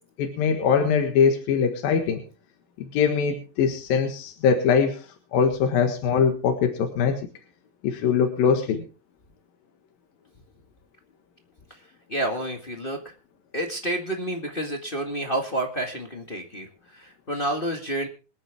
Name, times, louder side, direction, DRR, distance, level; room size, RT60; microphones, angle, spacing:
voice 1, 0.2-2.2 2.8-5.0 5.3-7.2 7.8-8.8, left 6 dB, 75° left, 4 dB, 3.3 m, -22 dB
voice 2, 12.1-13.0 13.5-18.1, right 1 dB, 40° left, 2 dB, 0.7 m, -29 dB
26.5 x 9.1 x 3.5 m, 0.33 s
omnidirectional pair, 4.3 m